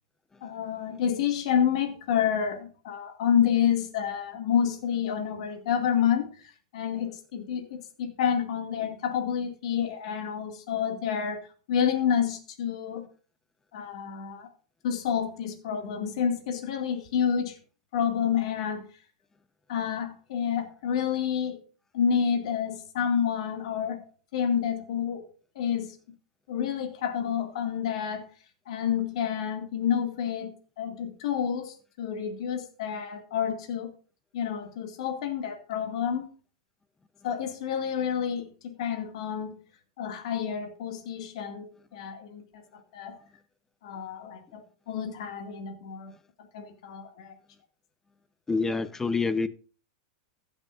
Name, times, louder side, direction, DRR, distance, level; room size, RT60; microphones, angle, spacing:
voice 1, 0.4-13.1 13.7-14.5 14.8-17.6 17.9-18.8 19.7-21.6 21.9-24.0 24.3-26.0 26.5-28.2 28.7-33.9 34.3-36.3 37.2-39.5 40.0-43.2 43.8-46.1 46.5-47.4, left 8 dB, 70° left, 2.2 m, -29 dB
voice 2, 48.5-49.5, left 4 dB, 10° left, 0.8 m, -26 dB
16.0 x 8.0 x 2.6 m
hypercardioid pair, 130°, 3 cm